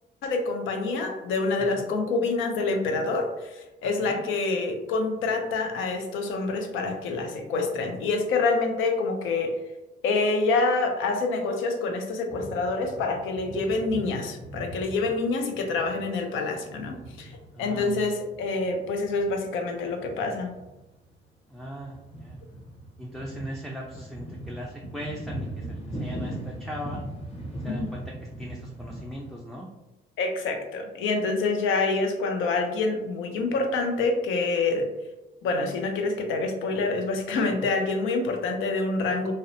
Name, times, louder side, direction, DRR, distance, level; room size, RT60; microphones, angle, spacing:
voice 1, 0.2-9.6 10.0-20.5 27.7-27.9 30.2-34.9 35.4-39.3, left 3 dB, 90° left, 4 dB, 0.5 m, -27 dB
voice 2, 3.8-4.2 15.7-15.8 17.5-18.1 21.5-22.4 23.0-27.0 27.6-29.7 37.6-37.7, equal, ahead, -2 dB, 0.3 m, -39 dB
sound 1, 12.3-19.4 19.8-21.2 21.5-29.3, right 1 dB, 30° left, 0.8 m, -39 dB
2.7 x 2.0 x 2.6 m, 1.0 s
cardioid pair, 90°, 20 cm